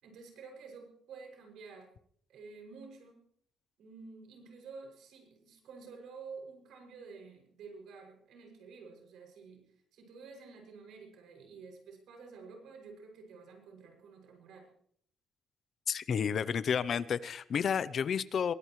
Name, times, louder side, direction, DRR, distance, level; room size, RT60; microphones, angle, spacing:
voice 1, 0.0-1.9 2.3-3.2 3.8-14.7, right 4 dB, 70° right, 2 dB, 6.4 m, -50 dB
voice 2, 15.9-18.5, left 7 dB, 40° left, 17 dB, 0.6 m, -31 dB
23.0 x 18.0 x 3.2 m, 0.64 s
cardioid pair, 160°, 0 cm